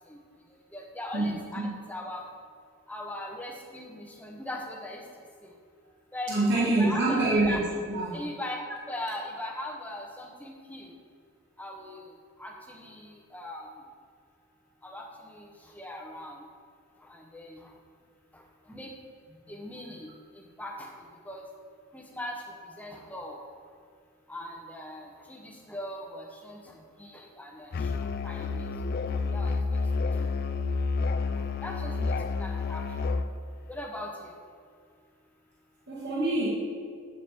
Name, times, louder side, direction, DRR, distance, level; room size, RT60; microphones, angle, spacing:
voice 1, 0.7-1.6 1.9-2.2 2.9-5.0 6.1-7.2 7.5-7.6 8.1-10.9 11.6-12.0 12.4-13.7 14.8-15.0 15.3-15.5 15.8-16.3 17.1-17.6 18.7-18.9 19.5-20.1 20.4-20.9 21.3-21.4 21.9-22.3 22.8-23.4 24.3-26.6 27.0-28.6 29.1-29.8 30.1-30.2 31.4-32.1 32.4-32.8 33.7-34.3, left 1 dB, 5° left, 0 dB, 0.7 m, -39 dB
voice 2, 6.3-7.6 7.9-8.2 35.9-36.5, right 2 dB, 50° right, -7 dB, 1.4 m, -25 dB
Musical instrument, 27.7-33.3, left 4 dB, 45° left, 0.3 m, -29 dB
8.2 x 6.8 x 3.4 m, 2.2 s
head